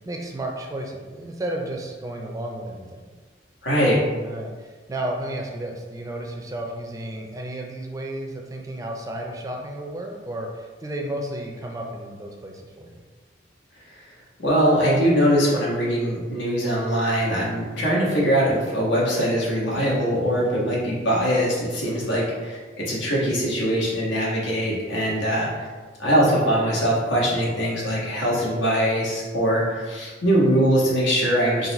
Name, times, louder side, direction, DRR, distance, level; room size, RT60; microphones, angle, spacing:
voice 1, 0.1-3.0 4.2-12.9 20.3-20.7 21.8-22.0 24.9-25.5, right 1 dB, 20° right, 1 dB, 0.4 m, -33 dB
voice 2, 3.6-4.0 14.4-25.7 26.0-31.7, equal, 85° left, -5 dB, 1.3 m, -22 dB
4.0 x 2.5 x 4.1 m, 1.4 s
head